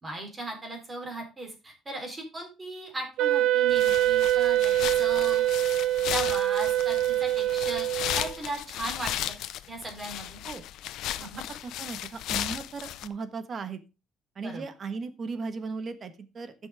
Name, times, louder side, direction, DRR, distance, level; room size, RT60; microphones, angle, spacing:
voice 1, 0.0-5.4 6.1-7.9 8.2-9.4 9.7-10.4 11.2-11.4 14.4-14.6, right 2 dB, 20° right, 3 dB, 3.7 m, -37 dB
Wind instrument woodwind instrument, 3.2-8.4, right 13 dB, 80° right, 0.4 m, -24 dB
sound 1, 3.7-13.1, left 13 dB, 80° left, 0.6 m, -35 dB
voice 2, 11.6-13.8 14.3-16.5, right 4 dB, 35° right, 10 dB, 1.4 m, -37 dB
14.0 x 6.2 x 3.5 m, 0.29 s
cardioid pair, 145°, 0 cm